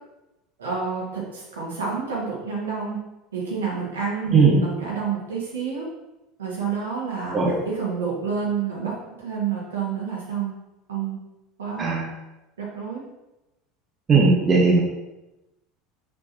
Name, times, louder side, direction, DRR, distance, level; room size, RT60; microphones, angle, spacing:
voice 1, 0.6-3.0 3.3-5.9 6.4-10.5 10.9-11.2 11.6-11.9 12.6-13.0, right 6 dB, 75° right, -5 dB, 2.2 m, -29 dB
voice 2, 11.8-12.1 14.1-14.8, right 4 dB, 30° right, -2 dB, 1.4 m, -17 dB
6.3 x 4.6 x 4.7 m, 0.98 s
figure-of-eight pair, 70°, 0 cm